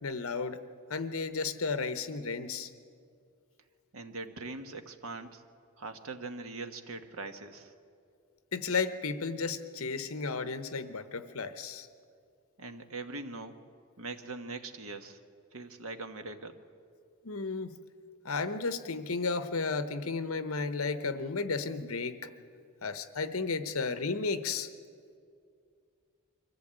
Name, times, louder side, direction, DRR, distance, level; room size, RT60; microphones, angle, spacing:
voice 1, 0.0-0.6 0.9-2.7 8.5-11.9 17.2-17.8 18.2-22.3 22.8-24.7, left 4 dB, 70° left, 11 dB, 1.0 m, -33 dB
voice 2, 3.9-5.4 5.8-7.7 12.6-13.6 14.0-15.2 15.5-16.6, right 3 dB, 70° right, 7 dB, 1.3 m, -41 dB
24.0 x 15.0 x 8.9 m, 2.3 s
head